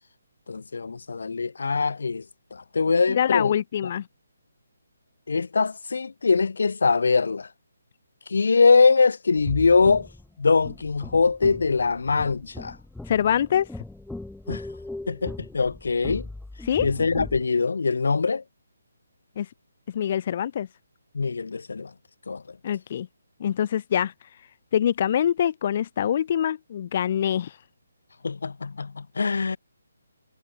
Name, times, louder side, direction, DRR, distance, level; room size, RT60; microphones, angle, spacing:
voice 1, 0.5-2.2 2.5-3.5 5.3-7.5 8.3-10.1 10.4-12.8 14.5-14.6 15.1-16.3 16.8-18.4 21.1-21.9 22.3-22.6 28.2-29.6, left 4 dB, 75° left, 1.6 m, -22 dB
voice 2, 3.1-4.0 13.1-13.7 16.7-16.9 19.4-19.5 19.9-20.7 22.6-23.1 23.4-24.1 24.7-27.5, left 9 dB, 40° left, 0.8 m, -24 dB
sound 1, 9.3-17.4, left 2 dB, ahead, 2.5 m, -39 dB
hypercardioid pair, 160°, 0 cm